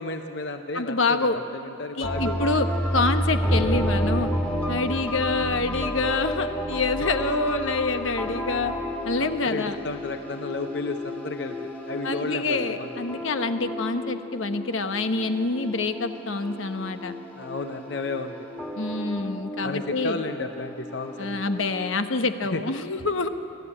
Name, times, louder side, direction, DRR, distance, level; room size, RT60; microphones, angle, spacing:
voice 1, 0.0-2.4 9.2-11.5 11.9-13.0 17.4-18.5 19.6-21.4 22.5-22.6, left 3 dB, 55° left, 6 dB, 0.7 m, -32 dB
voice 2, 0.7-1.4 2.0-2.7 2.9-4.3 4.7-8.7 9.0-9.8 12.0-17.1 18.8-20.2 21.2-23.3, left 3 dB, 80° left, 8 dB, 1.0 m, -26 dB
sound 1, 2.0-21.9, equal, 10° left, 1.8 m, -31 dB
21.5 x 14.0 x 9.9 m, 2.9 s
head